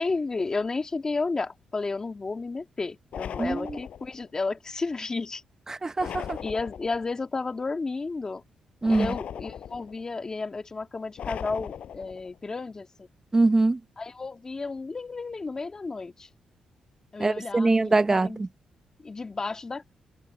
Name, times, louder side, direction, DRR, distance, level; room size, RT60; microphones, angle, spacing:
voice 1, 0.0-5.4 6.4-8.4 8.9-13.1 14.0-16.3 17.1-18.4 19.0-19.9, left 3 dB, 30° left, 2.1 m, -32 dB
sound 1, 3.1-4.2 6.0-7.1 8.8-10.0 11.2-12.3, left 9 dB, 65° left, 7.7 m, -38 dB
voice 2, 3.4-3.8 5.8-6.4 8.8-9.1 13.3-13.8 17.2-18.5, right 3 dB, 20° right, 0.7 m, -23 dB
cardioid pair, 100°, 2 cm